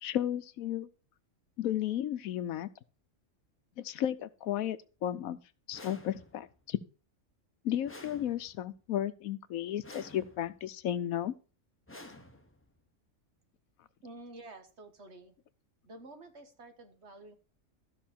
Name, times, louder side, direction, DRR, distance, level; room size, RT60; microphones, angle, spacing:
voice 1, 0.0-0.9 1.6-2.7 3.8-5.4 5.7-6.8 7.6-11.3, left 11 dB, 80° left, 1.1 m, -33 dB
sound 1, 5.7-6.6 7.8-8.8 9.8-10.6 11.9-12.8, left 1 dB, 10° left, 1.0 m, -51 dB
voice 2, 14.0-15.4 15.8-17.4, right 2 dB, 55° right, 1.7 m, -50 dB
13.5 x 6.2 x 4.3 m
omnidirectional pair, 1.4 m